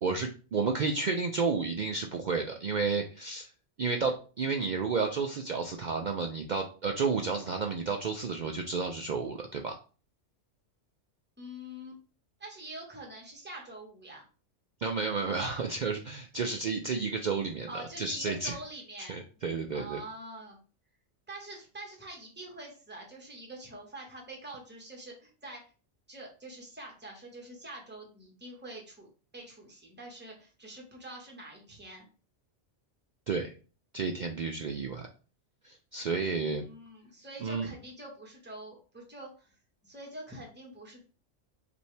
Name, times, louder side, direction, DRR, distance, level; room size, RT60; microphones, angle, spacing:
voice 1, 0.0-3.5 3.8-9.8 14.8-18.6 19.0-20.0 33.3-33.5 33.9-35.1 35.6-36.7 37.4-37.7, right 4 dB, 65° right, 3 dB, 0.4 m, -31 dB
voice 2, 11.4-12.0 12.4-14.2 17.7-19.2 19.7-20.6 21.3-25.6 26.1-32.1 36.5-39.5 39.8-41.0, right 1 dB, 10° right, 0 dB, 1.2 m, -45 dB
5.4 x 2.7 x 3.3 m, 0.37 s
omnidirectional pair, 1.3 m